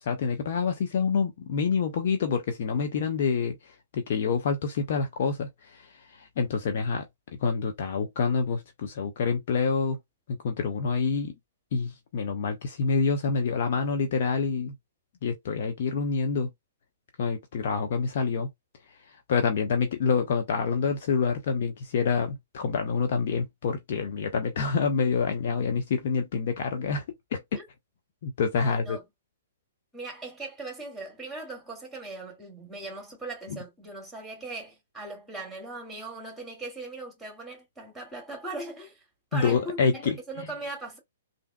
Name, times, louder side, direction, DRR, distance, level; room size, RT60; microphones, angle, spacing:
voice 1, 0.0-7.0 7.4-10.0 10.3-11.3 11.7-14.7 15.2-16.5 17.2-18.5 19.3-27.0 27.3-27.6 28.2-29.0 33.5-33.6 39.3-40.5, left 5 dB, 50° left, 0.6 m, -27 dB
voice 2, 28.6-29.0 29.9-39.0 39.3-41.0, right 2 dB, ahead, 2.0 m, -39 dB
3.4 x 2.7 x 2.2 m
figure-of-eight pair, 115°, 0 cm